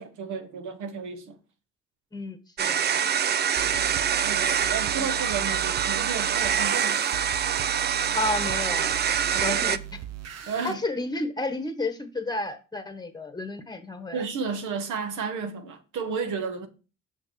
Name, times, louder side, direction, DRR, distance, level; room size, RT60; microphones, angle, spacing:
voice 1, 0.0-1.4 3.5-3.8 4.2-7.0 9.3-9.6 10.5-10.8 14.1-16.7, right 5 dB, 80° right, 1.2 m, -33 dB
voice 2, 2.1-2.8 4.9-5.1 8.1-9.0 9.4-9.8 10.4-14.2, left 2 dB, 15° left, 1.1 m, -31 dB
sound 1, 2.6-9.8, right 8 dB, 35° right, 0.4 m, -25 dB
sound 2, 3.6-10.7, right 13 dB, 55° right, 0.8 m, -39 dB
6.3 x 6.0 x 3.1 m
cardioid pair, 90°, 30 cm